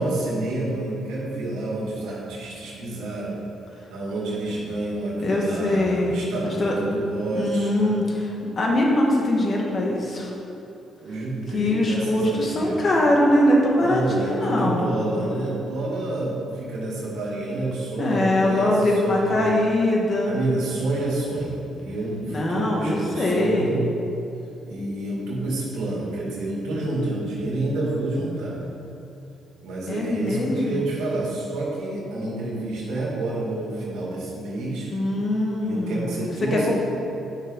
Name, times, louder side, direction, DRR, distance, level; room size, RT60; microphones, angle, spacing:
voice 1, 0.0-3.4 3.7-7.9 11.0-12.9 13.8-18.7 19.0-19.5 20.2-23.8 24.6-28.6 29.6-34.9 35.6-36.7, right 2 dB, 85° right, -5 dB, 2.1 m, -29 dB
voice 2, 5.2-6.7 7.3-8.2 8.6-10.3 11.5-14.9 18.0-20.4 22.2-23.7 29.9-30.9 34.9-36.7, left 1 dB, 40° left, -2 dB, 1.7 m, -22 dB
10.0 x 6.0 x 4.0 m, 2.8 s
cardioid pair, 90°, 0 cm